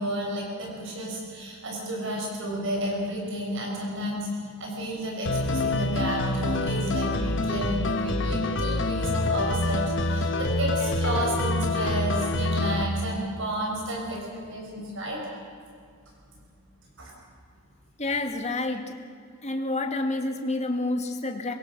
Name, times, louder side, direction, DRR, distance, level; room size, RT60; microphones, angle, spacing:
voice 1, 0.0-15.2 17.0-17.1, right 1 dB, 65° right, -1 dB, 6.1 m, -31 dB
sound 1, 5.3-12.8, left 2 dB, 60° left, 1.4 m, -26 dB
voice 2, 18.0-19.0 19.4-21.5, left 2 dB, 35° left, 4 dB, 2.2 m, -28 dB
26.0 x 22.5 x 6.4 m, 2.4 s
head